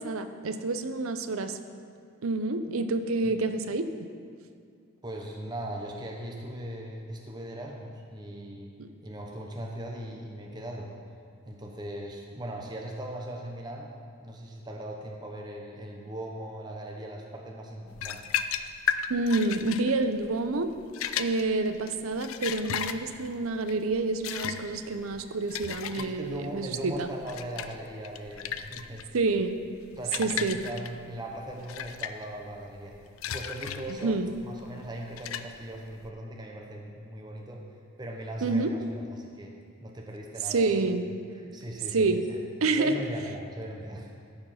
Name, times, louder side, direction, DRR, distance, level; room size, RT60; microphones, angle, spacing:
voice 1, 0.0-1.6 2.2-3.9 8.8-8.9 19.1-20.7 21.1-27.1 29.1-29.6 30.2-30.6 34.0-34.3 38.4-38.7 40.5-41.1 41.9-42.3 42.6-43.0, right 3 dB, 75° right, 9 dB, 0.6 m, -28 dB
voice 2, 5.0-8.7 9.0-10.9 11.5-13.9 14.2-18.4 25.7-29.1 30.0-33.0 33.3-37.6 38.0-40.9 41.3-42.4 42.7-44.1, right 1 dB, 20° right, 0 dB, 0.8 m, -39 dB
sound 1, 17.9-36.1, left 8 dB, 75° left, 0.4 m, -36 dB
14.0 x 4.7 x 5.8 m, 2.3 s
head